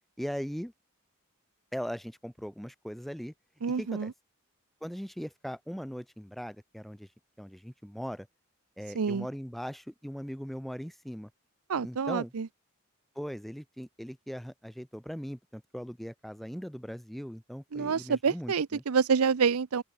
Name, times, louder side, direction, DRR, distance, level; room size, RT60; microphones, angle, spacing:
voice 1, 0.2-0.7 1.7-3.3 3.8-4.1 4.8-7.1 7.4-8.3 8.8-11.3 11.8-12.3 13.2-18.8, equal, ahead, 0.4 m, -39 dB
voice 2, 3.6-4.1 8.9-9.3 11.7-12.5 17.7-19.8, right 6 dB, 85° right, 0.6 m, -27 dB
open air
head